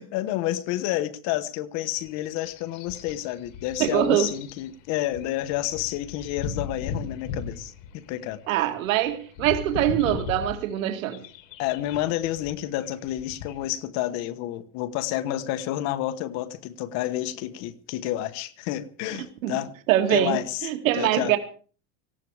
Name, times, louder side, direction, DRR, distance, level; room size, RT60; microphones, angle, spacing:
voice 1, 0.0-8.4 11.6-19.7 20.1-20.7 21.0-21.3, left 14 dB, 45° left, 1.2 m, -29 dB
sound 1, 1.9-13.7, left 5 dB, 75° left, 3.0 m, -38 dB
voice 2, 3.8-4.3 8.5-11.2 19.4-19.6 19.9-21.4, right 12 dB, 85° right, 2.2 m, -23 dB
18.5 x 16.0 x 4.8 m
supercardioid pair, 165°, 39 cm